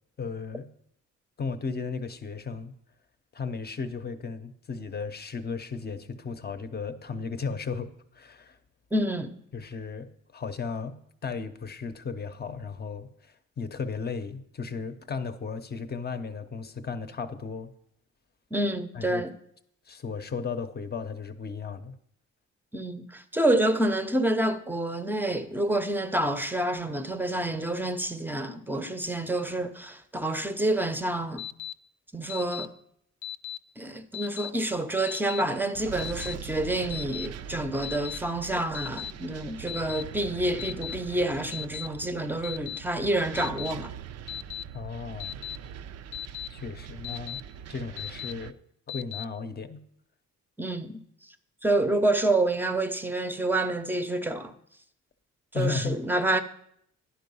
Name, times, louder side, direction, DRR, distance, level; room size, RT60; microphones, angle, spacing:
voice 1, 0.2-0.7 1.4-2.7 3.3-8.6 9.5-11.0 11.2-17.7 18.9-19.2 19.9-21.9 44.7-45.4 46.5-47.4 47.7-48.5 48.9-49.8 55.5-56.0, left 5 dB, 35° left, 0.7 m, -35 dB
voice 2, 8.9-9.4 18.5-19.4 22.7-31.4 32.1-32.7 33.8-43.9 50.6-51.0 51.6-54.5 55.5-56.4, right 1 dB, 5° right, 0.6 m, -28 dB
Alarm, 31.4-31.7 32.3-32.7 33.2-33.6 34.1-34.5 35.1-35.4 36.0-36.3 36.9-37.3 37.8-38.2 38.7-39.1 39.7-40.0 40.6-40.9 41.5-41.9 42.4-42.8 43.4-43.7 44.3-44.6 45.2-45.6 46.1-46.5 47.0-47.4 48.0-48.3 48.9-49.2, left 11 dB, 90° left, 0.5 m, -36 dB
sound 1, 35.7-48.5, right 8 dB, 60° right, 0.5 m, -42 dB
10.5 x 4.6 x 5.5 m
cardioid pair, 90°, 30 cm